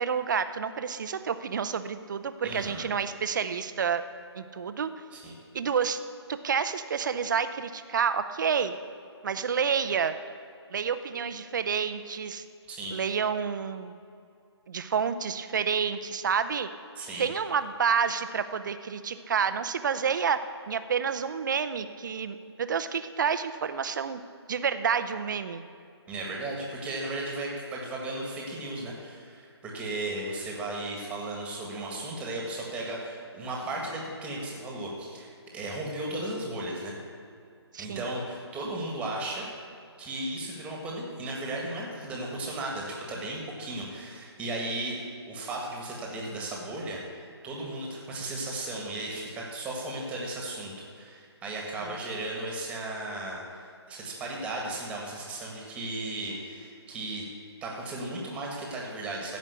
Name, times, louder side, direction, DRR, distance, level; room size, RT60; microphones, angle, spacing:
voice 1, 0.0-4.0 4.4-4.9 5.5-6.0 6.3-8.8 9.2-10.2 10.7-12.4 12.9-14.0 14.7-16.7 17.2-20.4 20.7-24.2 24.5-25.6 37.7-38.1 51.8-52.0, right 6 dB, 45° right, 11 dB, 0.7 m, -29 dB
voice 2, 2.4-2.9 5.1-5.3 12.7-13.0 17.0-17.3 26.1-36.9 37.8-39.5 40.0-57.3 57.6-59.4, right 2 dB, 10° right, -2 dB, 1.7 m, -35 dB
15.5 x 5.3 x 8.2 m, 2.4 s
figure-of-eight pair, 155°, 14 cm